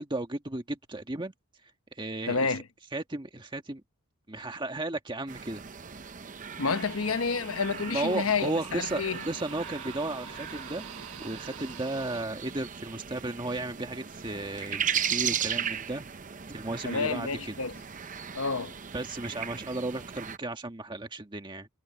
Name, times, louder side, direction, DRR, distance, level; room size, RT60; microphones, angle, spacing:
voice 1, 0.0-1.3 1.9-2.6 2.9-3.8 4.3-5.6 7.9-10.8 11.2-16.0 16.5-17.5 18.9-21.7, right 2 dB, 20° right, 1.6 m, -34 dB
voice 2, 2.3-2.6 6.6-9.2 16.8-17.7 18.3-18.7, left 4 dB, 75° left, 1.0 m, -29 dB
sound 1, 5.3-20.4, right 8 dB, 40° right, 0.7 m, -37 dB
sound 2, 6.7-12.2, right 7 dB, 80° right, 1.4 m, -45 dB
head